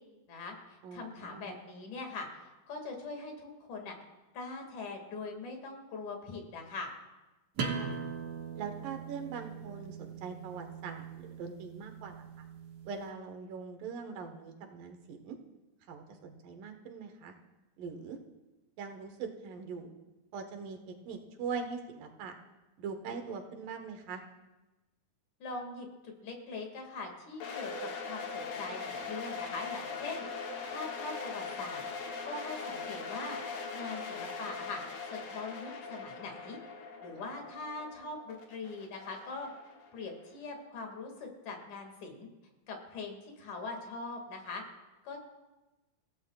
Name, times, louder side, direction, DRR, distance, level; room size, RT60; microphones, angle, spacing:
voice 1, 0.3-4.0 4.3-6.9 25.4-30.3 30.7-31.8 32.2-33.4 33.7-34.8 35.1-36.6 37.0-39.5 39.9-42.3 42.7-44.6 45.0-45.2, left 3 dB, 70° left, 2 dB, 3.6 m, -42 dB
voice 2, 0.8-1.6 7.7-8.0 8.6-12.5 12.9-15.4 15.9-17.3 17.8-18.2 18.8-19.9 20.3-22.3 22.8-24.2 37.2-37.4, right 5 dB, 90° right, 4 dB, 3.0 m, -42 dB
sound 1, 7.6-13.0, right 5 dB, 70° right, 2.9 m, -41 dB
sound 2, 27.4-40.3, left 4 dB, 85° left, 3.4 m, -41 dB
29.5 x 16.0 x 2.4 m, 1.1 s
omnidirectional pair, 3.7 m